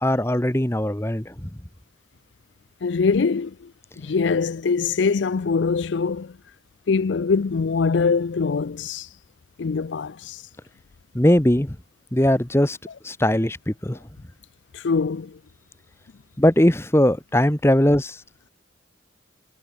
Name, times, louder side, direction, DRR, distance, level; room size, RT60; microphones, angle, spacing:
voice 1, 0.0-1.5 11.1-11.8 12.1-12.8 13.0-14.0 16.4-18.2, left 1 dB, 15° left, 1.0 m, -20 dB
voice 2, 2.8-3.7 4.0-6.3 6.9-9.1 9.6-10.4 14.7-15.4, left 5 dB, 75° left, 0.5 m, -23 dB
head